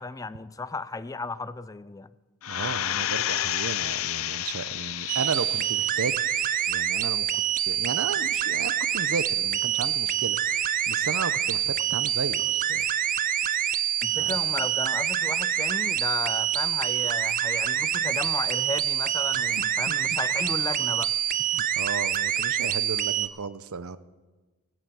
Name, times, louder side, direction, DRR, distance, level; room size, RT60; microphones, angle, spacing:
voice 1, 0.0-2.1 14.0-21.1, left 3 dB, 15° left, 16 dB, 0.4 m, -34 dB
sound 1, 2.4-5.8 6.3-6.4, left 12 dB, 75° left, 0.5 m, -30 dB
voice 2, 2.5-6.2 6.7-12.9 14.1-14.4 19.3-19.4 19.9-20.0 21.5-24.0, right 5 dB, 85° right, 15 dB, 0.7 m, -34 dB
sound 2, 5.1-23.3, right 10 dB, 40° right, 0.5 m, -26 dB
19.0 x 8.1 x 8.2 m, 1.2 s
head